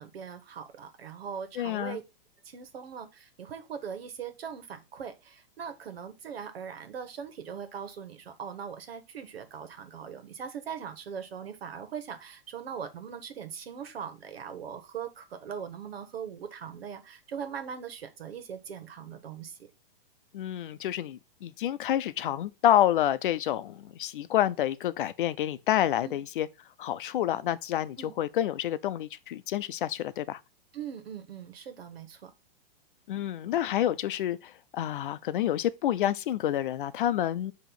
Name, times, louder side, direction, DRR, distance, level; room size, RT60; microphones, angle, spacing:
voice 1, 0.0-2.0 2.4-19.7 26.0-26.2 28.0-28.1 30.7-32.3, right 7 dB, 90° right, 1.5 m, -40 dB
voice 2, 1.6-2.0 20.3-26.5 26.8-30.4 33.1-37.5, left 11 dB, 60° left, 0.6 m, -28 dB
7.1 x 3.0 x 5.8 m
hypercardioid pair, 165°, 29 cm